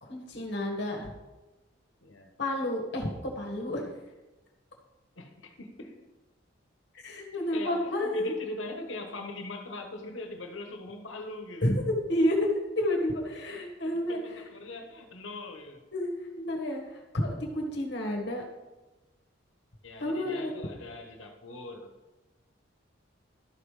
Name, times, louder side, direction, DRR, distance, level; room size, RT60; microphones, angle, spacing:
voice 1, 0.0-1.1 2.4-4.0 7.0-8.3 11.6-14.4 15.9-16.1 16.4-18.4 20.0-20.5, left 1 dB, 60° left, 0 dB, 1.5 m, -30 dB
voice 2, 2.0-2.3 5.2-6.1 7.3-11.7 13.8-15.8 19.8-21.9, left 2 dB, 90° left, 5 dB, 1.2 m, -41 dB
12.0 x 5.5 x 4.9 m, 1.1 s
head